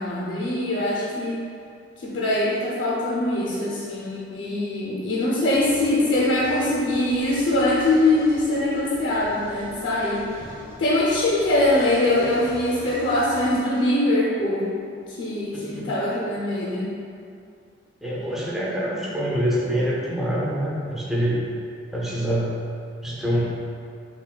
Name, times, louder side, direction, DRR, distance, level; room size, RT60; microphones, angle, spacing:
voice 1, 0.0-1.5 2.0-10.5 10.8-14.7 15.1-16.9, left 1 dB, 80° left, -6 dB, 0.6 m, -23 dB
sound 1, 5.5-13.6, equal, 50° right, 1.3 m, -43 dB
voice 2, 18.0-21.4 21.9-22.5 23.0-23.6, equal, ahead, -7 dB, 0.5 m, -25 dB
5.6 x 2.3 x 2.2 m, 2.4 s
head